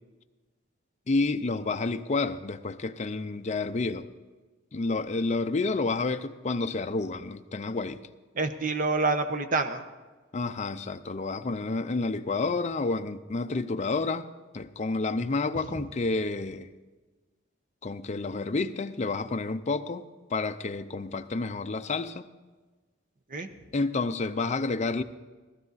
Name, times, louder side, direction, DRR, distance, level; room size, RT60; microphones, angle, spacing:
voice 1, 1.1-4.1 4.7-8.1 10.3-14.3 14.5-16.7 17.8-22.3 23.7-25.0, left 3 dB, 35° left, 9 dB, 0.5 m, -30 dB
voice 2, 8.3-9.9 23.3-23.5, right 3 dB, 40° right, 8 dB, 0.9 m, -27 dB
15.5 x 14.5 x 4.1 m, 1.3 s
head